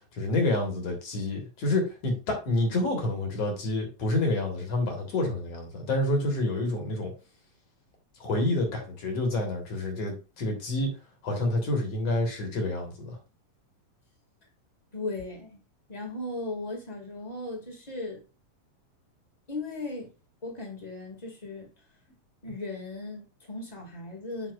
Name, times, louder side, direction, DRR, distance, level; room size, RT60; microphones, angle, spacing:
voice 1, 0.1-7.1 8.2-10.9 11.2-13.2, left 2 dB, 60° left, 2.4 m, -28 dB
voice 2, 14.9-15.6 15.9-18.2 19.5-20.1 20.4-21.7 22.4-24.5, left 2 dB, 15° left, 1.4 m, -37 dB
8.0 x 6.0 x 2.4 m
omnidirectional pair, 3.5 m